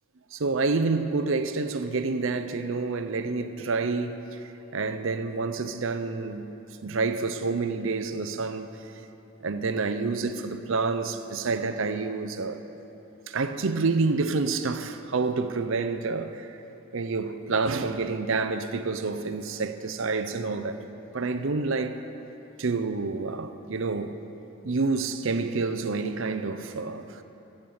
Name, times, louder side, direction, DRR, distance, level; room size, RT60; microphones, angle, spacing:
voice 1, 0.3-6.4 6.8-8.7 9.4-12.6 13.3-16.6 16.9-20.8 21.1-22.0 22.6-24.2 24.6-27.2, right 4 dB, 60° right, 0.6 m, -28 dB
14.0 x 7.9 x 7.0 m
head